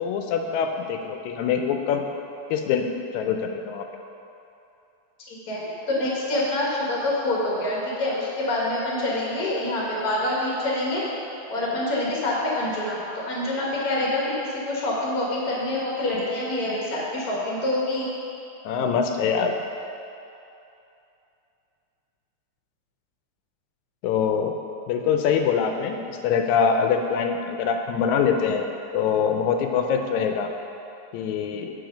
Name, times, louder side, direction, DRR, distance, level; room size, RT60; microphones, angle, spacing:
voice 1, 0.0-2.1 2.5-2.9 3.1-3.9 18.7-19.5 24.0-24.6 24.9-28.7 28.9-30.5 31.1-31.7, left 6 dB, 80° left, 5 dB, 1.9 m, -24 dB
voice 2, 5.3-5.6 5.9-11.0 11.5-18.1, left 1 dB, 45° left, -5 dB, 1.2 m, -26 dB
7.8 x 4.4 x 5.1 m, 2.7 s
omnidirectional pair, 3.4 m